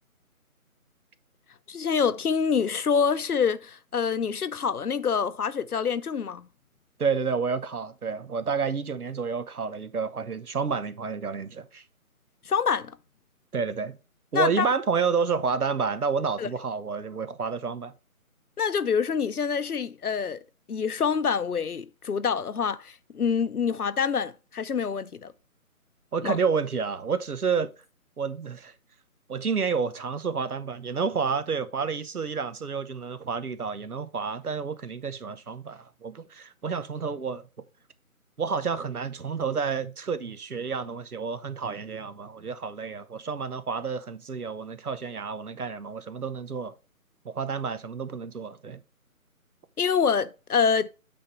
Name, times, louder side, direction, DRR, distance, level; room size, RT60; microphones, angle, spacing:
voice 1, 1.7-6.5 12.4-13.0 14.3-14.7 16.4-16.5 18.6-20.4 20.7-25.3 26.2-26.4 49.8-50.9, left 6 dB, 85° left, 0.7 m, -26 dB
voice 2, 7.0-11.8 13.5-14.0 14.3-17.9 26.1-27.7 28.2-28.7 29.3-37.5 38.4-46.7 47.2-48.8, right 5 dB, 85° right, 1.0 m, -30 dB
8.7 x 3.5 x 4.6 m
figure-of-eight pair, 155°, 43 cm